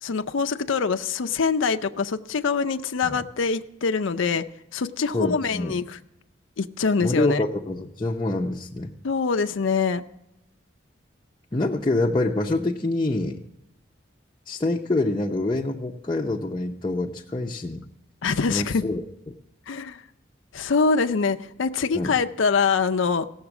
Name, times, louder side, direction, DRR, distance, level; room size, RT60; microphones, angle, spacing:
voice 1, 0.0-4.4 4.7-6.0 6.6-7.4 9.0-10.0 18.2-18.8 19.7-20.0 20.5-23.3, left 5 dB, 75° left, 8 dB, 0.5 m, -24 dB
voice 2, 5.1-5.7 7.0-8.9 11.5-13.4 14.5-17.9 18.5-19.3 21.9-22.1, left 2 dB, 20° left, -2 dB, 0.6 m, -26 dB
16.5 x 7.2 x 6.0 m, 0.91 s
head